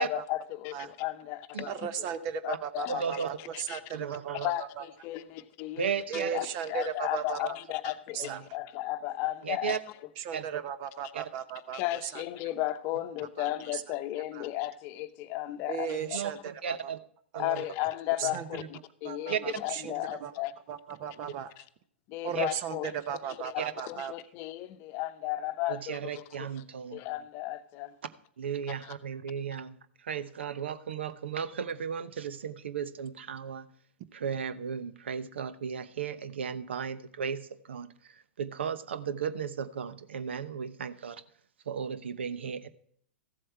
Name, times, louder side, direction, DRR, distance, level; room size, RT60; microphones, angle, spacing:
voice 1, 0.0-2.1 2.4-3.2 3.5-3.8 4.4-9.8 11.7-16.2 17.4-20.6 21.6-21.7 22.1-22.9 23.4-26.5 26.9-27.9 28.8-28.9, left 15 dB, 40° left, 0.9 m, -35 dB
voice 2, 1.6-4.8 6.1-7.5 8.1-8.4 10.2-12.2 13.4-13.8 14.3-14.5 15.7-16.4 16.7-16.8 17.3-17.4 18.2-18.7 19.0-19.9 20.2-20.3 20.7-21.5 22.2-24.1, right 8 dB, 40° right, 0.8 m, -36 dB
voice 3, 2.9-3.3 3.9-4.5 5.8-6.4 8.2-8.5 9.4-9.8 10.3-10.6 11.1-11.2 16.0-17.0 17.3-17.6 18.2-18.4 19.3-19.6 22.3-22.5 23.6-23.7 25.7-27.0 28.4-33.7 34.1-41.2 41.7-42.7, right 7 dB, 70° right, 0.9 m, -35 dB
14.5 x 7.8 x 4.6 m
figure-of-eight pair, 110°, 6 cm